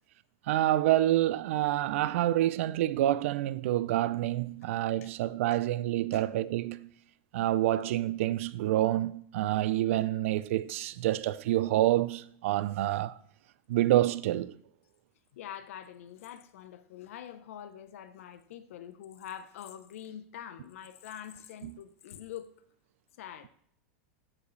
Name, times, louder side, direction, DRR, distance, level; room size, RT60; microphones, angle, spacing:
voice 1, 0.5-6.9 7.3-13.2 13.7-14.5 21.6-21.7, right 14 dB, 70° right, 0.4 m, -27 dB
voice 2, 15.3-22.5 23.2-23.5, left 10 dB, 80° left, 0.7 m, -45 dB
14.5 x 4.9 x 3.2 m
supercardioid pair, 160°, 7 cm